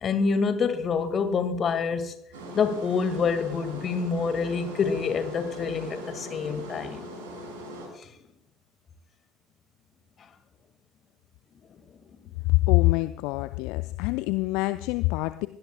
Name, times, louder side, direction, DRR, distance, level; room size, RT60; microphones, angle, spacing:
voice 1, 0.0-2.1 2.5-7.1, left 5 dB, 35° left, 10 dB, 1.8 m, -27 dB
sound 1, 2.3-7.9, equal, 65° right, 5.4 m, -40 dB
voice 2, 12.4-15.5, left 21 dB, 55° left, 12 dB, 0.5 m, -24 dB
22.5 x 17.0 x 2.2 m, 0.73 s
figure-of-eight pair, 60°, 0 cm